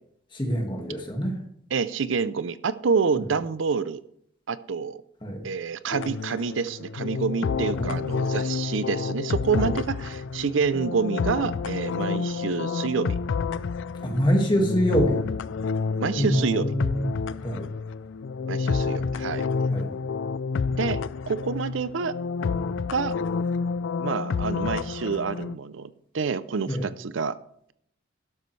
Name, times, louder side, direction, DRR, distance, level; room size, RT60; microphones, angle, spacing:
voice 1, 0.3-1.4 5.2-5.5 7.8-8.0 9.5-9.8 14.0-15.2 16.2-17.2 17.4-17.7 19.7-19.9 26.7-26.8, equal, 25° left, 1 dB, 1.8 m, -25 dB
voice 2, 1.7-4.0 4.5-5.0 5.4-13.2 16.0-16.7 18.5-19.5 20.8-21.0 21.3-22.1 22.9-23.1 24.0-27.4, right 5 dB, 80° right, 15 dB, 0.5 m, -27 dB
sound 1, 5.9-25.6, left 5 dB, 70° left, 0.4 m, -29 dB
12.0 x 12.0 x 3.2 m, 0.70 s
head